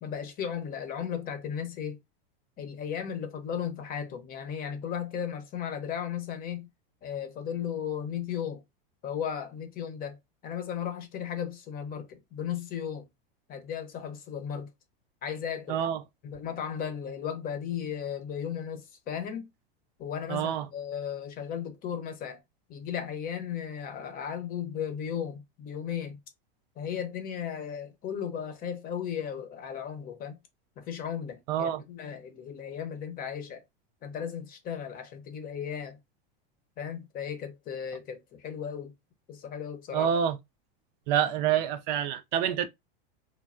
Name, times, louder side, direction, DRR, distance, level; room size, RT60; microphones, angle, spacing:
voice 1, 0.0-2.0 2.6-6.7 7.0-8.6 9.0-10.2 10.4-13.1 13.5-14.7 15.2-15.8 16.2-19.5 20.0-22.4 22.7-26.2 26.8-30.4 30.8-33.6 34.0-36.0 36.8-38.9 39.3-40.1, left 8 dB, 30° left, 0.7 m, -35 dB
voice 2, 15.7-16.0 20.3-20.7 31.5-31.8 39.9-40.4 41.1-42.7, right 9 dB, 50° right, 0.4 m, -27 dB
3.2 x 2.1 x 2.4 m
supercardioid pair, 130°, 30 cm